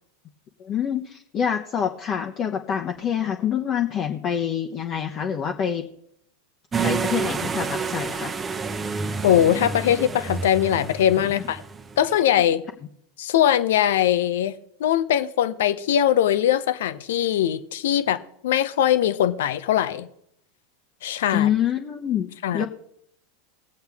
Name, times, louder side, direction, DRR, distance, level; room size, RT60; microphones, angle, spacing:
voice 1, 0.6-5.9 6.8-8.3 12.1-12.2 21.3-22.7, left 8 dB, 40° left, 1.1 m, -26 dB
sound 1, 6.7-12.1, right 5 dB, 20° right, 0.9 m, -29 dB
voice 2, 9.2-11.6 12.0-12.6 13.2-20.1 21.0-21.5 22.4-22.7, left 10 dB, 70° left, 0.8 m, -21 dB
20.0 x 8.0 x 3.6 m
hypercardioid pair, 90°, 0 cm